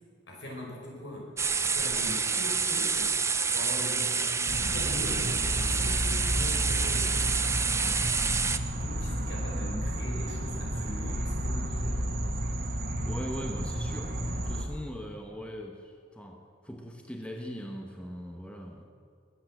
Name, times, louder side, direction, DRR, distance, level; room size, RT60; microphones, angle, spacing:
voice 1, 0.3-1.3 1.6-3.2 3.5-7.1 8.7-12.0, left 1 dB, 70° left, -1 dB, 5.0 m, -41 dB
sound 1, 1.4-8.6, right 5 dB, 15° right, 0.5 m, -28 dB
sound 2, 4.5-14.6, equal, 55° right, 1.7 m, -32 dB
voice 2, 7.8-8.2 13.0-18.8, equal, 5° left, 2 dB, 1.1 m, -41 dB
21.0 x 8.7 x 7.6 m, 2.3 s
head